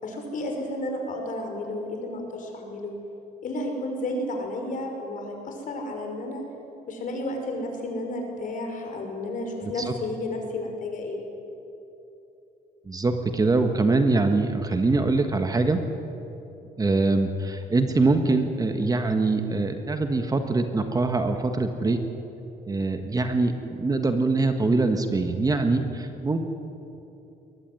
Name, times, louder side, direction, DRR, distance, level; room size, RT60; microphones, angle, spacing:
voice 1, 0.0-3.0 3.4-6.4 6.9-11.2, left 1 dB, 50° left, 3 dB, 5.8 m, -32 dB
voice 2, 9.6-9.9 12.8-15.8 16.8-22.0 22.7-26.4, right 3 dB, 20° right, 6 dB, 1.6 m, -23 dB
21.5 x 20.0 x 9.6 m, 2.9 s
cardioid pair, 110°, 17 cm